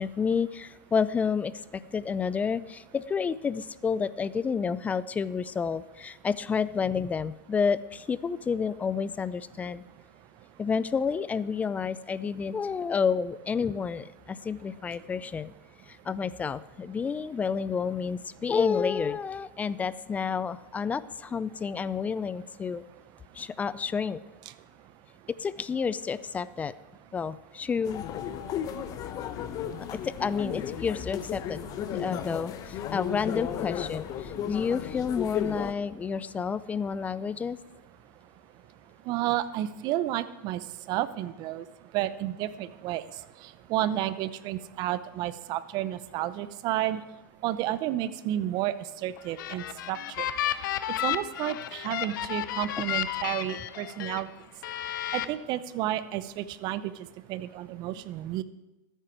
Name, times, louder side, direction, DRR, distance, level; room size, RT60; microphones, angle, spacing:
voice 1, 0.0-9.8 10.6-15.5 15.9-22.8 23.3-24.2 25.4-26.7 27.1-28.0 30.0-31.6 31.9-37.6, left 6 dB, 15° left, 17 dB, 0.4 m, -30 dB
sound 1, 27.8-35.7, left 9 dB, 35° left, 0.8 m, -34 dB
voice 2, 39.1-41.7 41.9-43.0 43.4-47.0 47.4-48.7 49.0-50.3 51.0-54.3 55.1-58.4, right 13 dB, 40° right, 15 dB, 0.7 m, -31 dB
sound 2, 49.2-54.2 54.6-55.3, left 12 dB, 70° left, 0.7 m, -32 dB
13.5 x 9.1 x 4.5 m, 1.0 s
hypercardioid pair, 125°, 11 cm